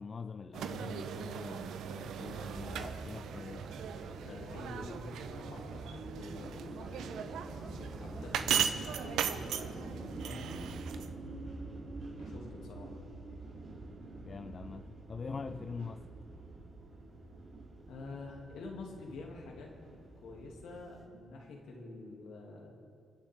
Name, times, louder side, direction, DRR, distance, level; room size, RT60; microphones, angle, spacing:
voice 1, 0.0-3.7 14.2-16.1, left 5 dB, 45° left, 0.4 m, -44 dB
sound 1, 0.5-11.1, right 8 dB, 70° right, 0.7 m, -38 dB
sound 2, 1.9-21.0, right 2 dB, 55° right, 2.9 m, -47 dB
sound 3, 2.2-9.1, left 1 dB, 5° left, 1.1 m, -52 dB
voice 2, 4.2-7.3 7.8-11.2 12.2-12.9 17.9-19.7 20.2-22.7, left 2 dB, 70° left, 2.4 m, -48 dB
29.0 x 9.9 x 3.6 m
hypercardioid pair, 40°, 0 cm